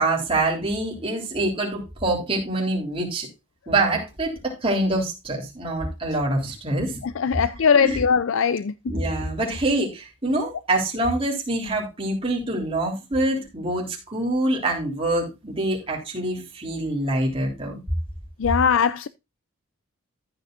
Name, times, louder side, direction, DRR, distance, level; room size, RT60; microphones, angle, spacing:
voice 1, 0.0-3.3 3.7-7.0 7.8-8.0 8.9-17.8, right 2 dB, 25° right, 3.6 m, -25 dB
voice 2, 7.0-8.9 18.4-19.1, left 6 dB, 60° left, 0.4 m, -20 dB
14.0 x 8.0 x 2.5 m
head